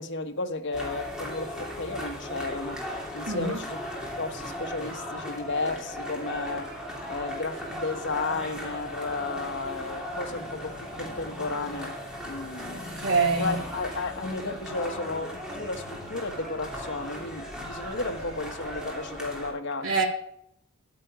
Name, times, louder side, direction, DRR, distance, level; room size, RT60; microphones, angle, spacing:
voice 1, 0.0-3.8 4.2-12.0 12.2-12.8 13.4-20.0, left 3 dB, 60° left, 1.2 m, -33 dB
sound 1, 0.7-19.5, equal, 5° right, 3.0 m, -37 dB
voice 2, 3.3-3.6 12.7-13.6 19.8-20.1, right 4 dB, 65° right, 3.5 m, -26 dB
14.0 x 10.5 x 5.0 m
head